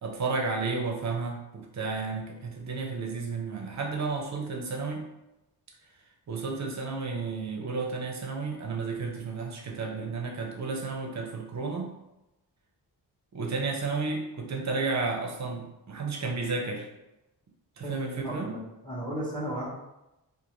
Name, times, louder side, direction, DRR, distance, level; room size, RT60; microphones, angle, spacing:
voice 1, 0.0-5.1 6.3-11.9 13.3-16.9 17.8-18.5, right 4 dB, 45° right, 1 dB, 0.6 m, -32 dB
voice 2, 17.8-19.7, equal, 10° left, -6 dB, 0.9 m, -35 dB
2.5 x 2.4 x 3.0 m, 0.93 s
wide cardioid pair, 115°, 40 cm